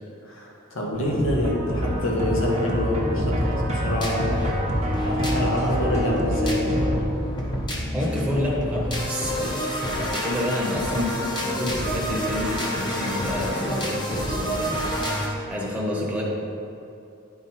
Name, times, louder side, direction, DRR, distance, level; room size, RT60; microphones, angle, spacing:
voice 1, 0.2-4.4 5.1-6.8, left 1 dB, 70° left, -2 dB, 1.3 m, -26 dB
sound 1, 0.9-7.0, equal, 35° right, 1.0 m, -26 dB
sound 2, 1.7-15.3, equal, 20° left, 0.9 m, -29 dB
voice 2, 7.9-16.2, left 1 dB, 5° right, -5 dB, 1.1 m, -29 dB
9.4 x 4.4 x 4.4 m, 2.6 s
head